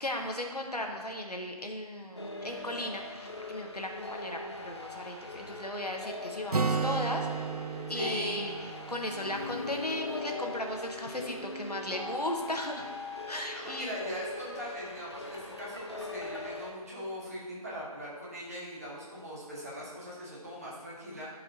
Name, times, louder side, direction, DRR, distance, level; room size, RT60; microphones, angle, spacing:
voice 1, 0.0-7.4 7.9-8.5 8.9-12.8 13.3-13.9, left 1 dB, 85° left, 2 dB, 1.2 m, -36 dB
sound 1, 2.2-16.7, left 2 dB, 45° left, 0.8 m, -41 dB
Acoustic guitar, 6.5-10.2, right 5 dB, 75° right, 0.5 m, -34 dB
voice 2, 7.9-8.4 13.5-21.3, equal, 25° right, -7 dB, 1.5 m, -40 dB
11.0 x 4.8 x 2.7 m, 1.4 s
figure-of-eight pair, 165°, 20 cm